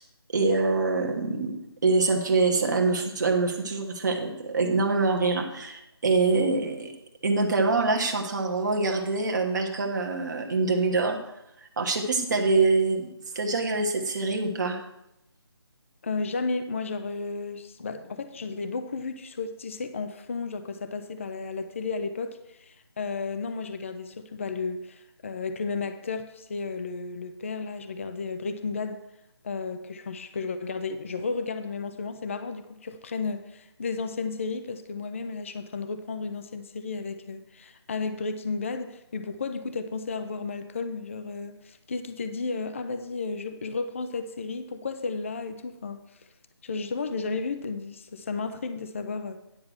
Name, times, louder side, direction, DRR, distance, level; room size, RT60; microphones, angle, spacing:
voice 1, 0.3-1.6 1.8-6.9 7.2-11.2 11.8-13.1 13.3-14.8, right 3 dB, 45° right, 3 dB, 1.3 m, -25 dB
voice 2, 16.0-29.0 29.4-46.0 46.6-49.4, left 4 dB, 30° left, 9 dB, 0.5 m, -33 dB
9.7 x 5.8 x 6.4 m, 0.84 s
figure-of-eight pair, 160°, 14 cm